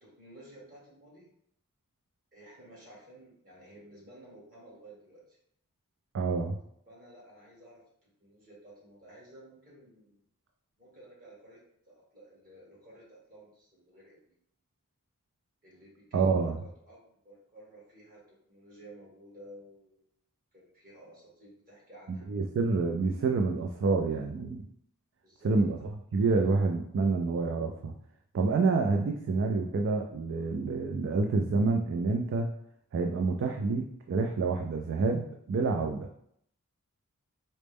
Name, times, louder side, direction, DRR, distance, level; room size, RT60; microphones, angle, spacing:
voice 1, 0.0-1.3 2.3-5.4 6.9-7.8 8.2-10.2 10.8-11.6 11.8-14.2 15.6-20.0 20.5-22.3 25.2-25.5, right 1 dB, 40° right, -6 dB, 1.5 m, -53 dB
voice 2, 6.1-6.6 16.1-16.6 22.1-24.6 25.4-25.8 26.1-27.9 28.3-32.5 32.9-36.1, right 4 dB, 55° right, 3 dB, 0.3 m, -28 dB
4.2 x 2.0 x 3.4 m, 0.71 s
head